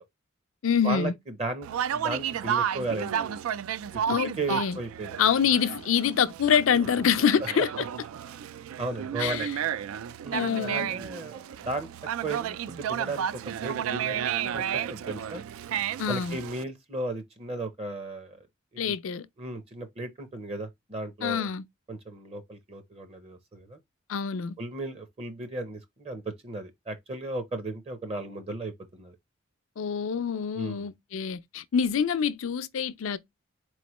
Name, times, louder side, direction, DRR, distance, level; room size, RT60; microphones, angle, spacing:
voice 1, 0.6-1.1 4.1-4.8 5.2-7.9 9.2-9.5 10.3-10.9 16.0-16.4 18.8-19.3 21.2-21.6 24.1-24.6 29.8-33.2, left 7 dB, 75° left, 0.4 m, -26 dB
voice 2, 1.4-3.4 3.9-4.0 4.4-5.2 8.8-9.5 10.2-11.9 12.2-13.3 13.6-15.4 16.1-18.4 18.7-18.8 19.4-21.5 21.9-23.8 24.6-29.2 30.6-30.9, right 2 dB, 30° right, 0.6 m, -35 dB
Conversation, 1.6-16.6, right 9 dB, 90° right, 0.3 m, -32 dB
4.2 x 3.1 x 3.0 m
head